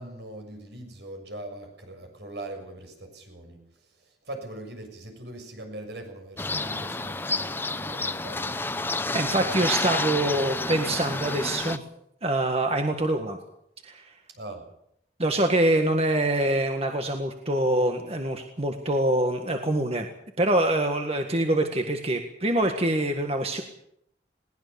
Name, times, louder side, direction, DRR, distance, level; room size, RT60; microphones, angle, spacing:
voice 1, 0.0-3.6 4.0-8.8 14.3-14.7, right 1 dB, 75° right, 4 dB, 6.8 m, -41 dB
sound 1, 6.4-11.8, left 3 dB, 10° left, 0.7 m, -29 dB
voice 2, 9.1-11.8 12.2-13.4 13.8-14.1 15.2-20.1 20.4-23.6, right 1 dB, 35° right, 4 dB, 1.7 m, -25 dB
21.0 x 18.5 x 7.0 m, 0.73 s
head